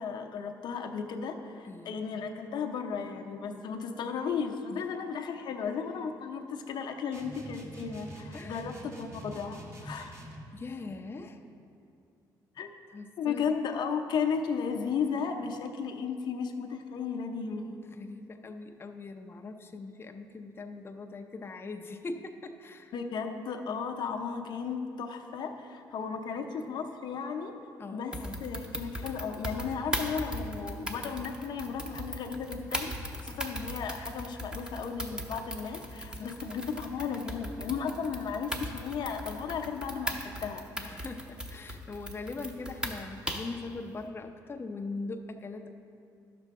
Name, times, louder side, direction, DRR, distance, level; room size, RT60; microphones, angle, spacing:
voice 1, 0.0-10.1 12.6-12.7 13.2-17.8 22.9-27.6 27.9-32.9 33.2-40.7, left 6 dB, 65° left, 4 dB, 0.7 m, -35 dB
voice 2, 1.7-2.0 3.5-3.6 4.7-4.9 8.3-8.6 10.5-11.4 12.9-13.5 17.9-22.9 27.8-28.5 36.2-36.4 40.8-45.7, left 3 dB, 30° left, 4 dB, 0.6 m, -41 dB
sound 1, 7.1-10.5, right 1 dB, 35° right, 1.3 m, -45 dB
sound 2, 28.1-43.6, equal, 10° right, 0.9 m, -38 dB
11.0 x 6.7 x 3.6 m, 2.5 s
cardioid pair, 75°, 8 cm